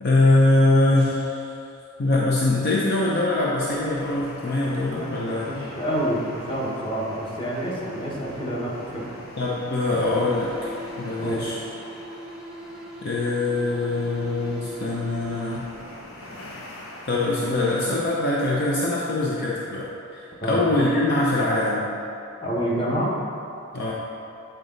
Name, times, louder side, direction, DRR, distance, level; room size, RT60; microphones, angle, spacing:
voice 1, 0.0-1.5 2.0-5.5 9.4-10.7 11.0-11.6 13.0-15.6 17.1-21.9 23.7-23.9, left 2 dB, 50° left, -4 dB, 0.6 m, -23 dB
sound 1, 3.6-18.0, left 1 dB, 80° left, 0.9 m, -43 dB
voice 2, 5.4-9.0 11.2-11.4 20.4-20.6 22.4-23.1, right 1 dB, 25° left, -5 dB, 1.2 m, -27 dB
sound 2, 10.0-15.9, equal, 5° right, 0.5 m, -40 dB
8.2 x 3.9 x 3.9 m, 2.6 s
head